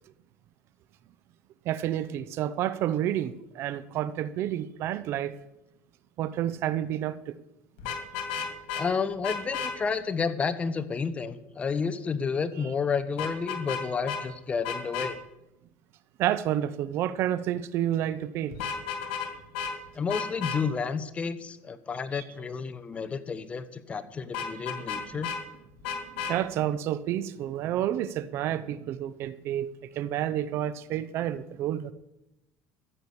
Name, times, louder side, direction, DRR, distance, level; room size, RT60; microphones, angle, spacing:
voice 1, 1.6-5.4 6.2-7.3 16.2-18.6 22.1-22.2 24.9-25.2 26.1-31.9, right 11 dB, 60° right, 0.7 m, -30 dB
Vehicle horn car horn honking, 7.8-8.8 9.2-9.7 13.2-13.8 14.1-14.2 14.6-15.1 18.5-19.3 19.5-19.7 20.1-20.6 24.3-25.4 25.8-26.3, left 7 dB, 90° left, 2.2 m, -32 dB
voice 2, 8.8-15.2 19.9-25.3, left 5 dB, 25° left, 1.0 m, -31 dB
14.5 x 6.2 x 8.6 m
cardioid pair, 120°, 5 cm